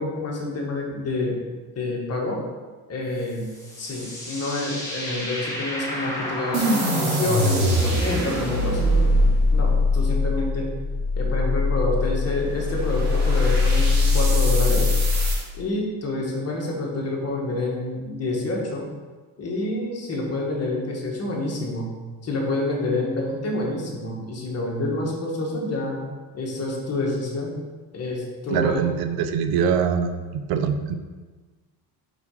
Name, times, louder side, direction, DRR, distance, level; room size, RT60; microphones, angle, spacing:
voice 1, 0.0-2.4 2.9-3.5 3.8-9.1 9.5-10.7 11.1-14.9 15.5-18.8 19.4-21.9 22.2-26.1 26.3-27.6 27.9-28.9, left 2 dB, 40° left, -1 dB, 1.7 m, -28 dB
sound 1, 3.2-10.3, left 1 dB, 10° left, 2.0 m, -33 dB
sound 2, 6.5-15.4, left 2 dB, 40° right, 2.1 m, -21 dB
voice 2, 28.5-30.1 30.5-30.9, right 7 dB, 65° right, 8 dB, 0.7 m, -23 dB
5.0 x 4.9 x 4.9 m, 1.3 s
cardioid pair, 110°, 40 cm